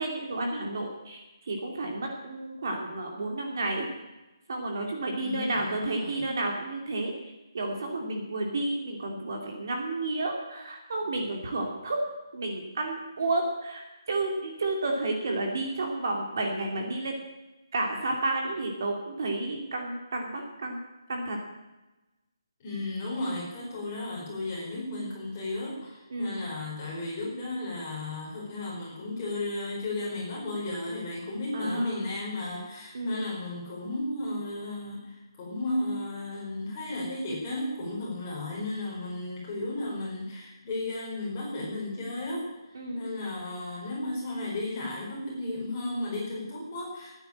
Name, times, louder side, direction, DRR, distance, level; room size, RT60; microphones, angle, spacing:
voice 1, 0.0-3.9 4.5-12.0 12.3-17.1 17.7-20.8 21.1-21.4 26.1-26.4 31.5-32.0 32.9-33.2 42.7-43.0, right 2 dB, 40° right, 1 dB, 2.6 m, -31 dB
voice 2, 5.2-6.4 22.6-42.5 42.9-47.1, left 2 dB, 15° left, -5 dB, 4.7 m, -34 dB
16.0 x 9.6 x 8.6 m, 1.1 s
hypercardioid pair, 180°, 3 cm